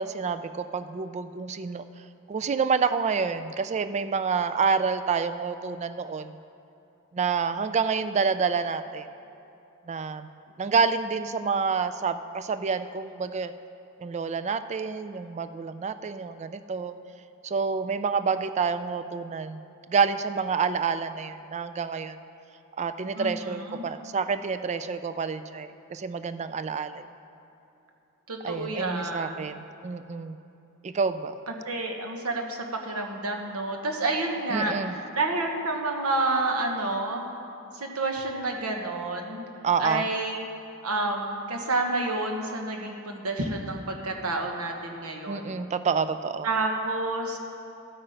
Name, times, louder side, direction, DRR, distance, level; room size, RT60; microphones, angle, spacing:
voice 1, 0.0-1.8 2.3-6.4 7.1-9.1 9.9-10.3 10.6-13.5 14.0-17.0 17.4-19.6 19.9-22.2 22.8-27.0 28.4-30.4 30.8-31.3 34.5-34.9 39.6-40.1 45.3-46.5, right 5 dB, 30° right, 11 dB, 0.3 m, -28 dB
voice 2, 23.2-23.8 28.3-29.5 31.5-37.2 37.7-39.4 39.8-40.5 40.8-45.6 46.4-47.4, right 2 dB, 70° right, 2 dB, 1.3 m, -29 dB
12.5 x 8.6 x 5.1 m, 2.8 s
head